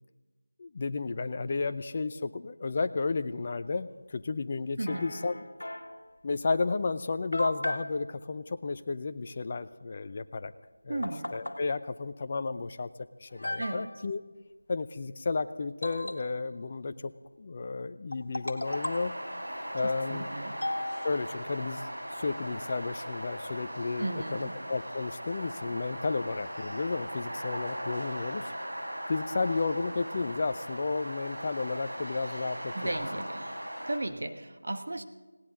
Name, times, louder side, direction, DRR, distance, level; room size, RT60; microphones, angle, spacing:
voice 1, 0.6-5.3 6.2-10.5 10.8-12.9 13.2-14.2 14.7-17.1 17.4-19.1 19.7-20.3 21.0-28.5 29.1-33.0, left 3 dB, 30° left, 10 dB, 0.5 m, -32 dB
voice 2, 4.8-5.1 10.9-11.4 13.6-13.9 19.8-20.6 24.0-24.5 32.7-33.5 33.9-35.0, right 2 dB, 55° right, 7 dB, 1.3 m, -35 dB
sound 1, 4.9-6.1 6.8-6.9 7.3-7.9 10.5-10.6 11.0-11.6 12.7-12.8 13.3-14.1 15.8-16.6 18.1-19.1 20.6-21.5, left 1 dB, 75° left, 1.9 m, -36 dB
sound 2, 18.6-34.0, equal, 85° right, 6.2 m, -39 dB
19.0 x 17.5 x 3.8 m, 1.3 s
figure-of-eight pair, 170°, 0 cm